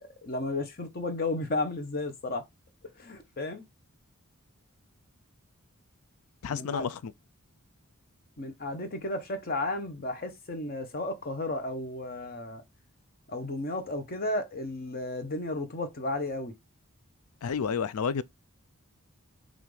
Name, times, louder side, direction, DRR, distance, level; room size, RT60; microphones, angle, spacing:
voice 1, 0.0-2.4 3.0-3.6 6.5-6.8 8.4-12.6 13.3-16.5, left 2 dB, 40° left, 0.9 m, -33 dB
voice 2, 6.4-6.9 17.4-18.2, left 6 dB, 80° left, 0.4 m, -30 dB
5.7 x 2.5 x 3.2 m
head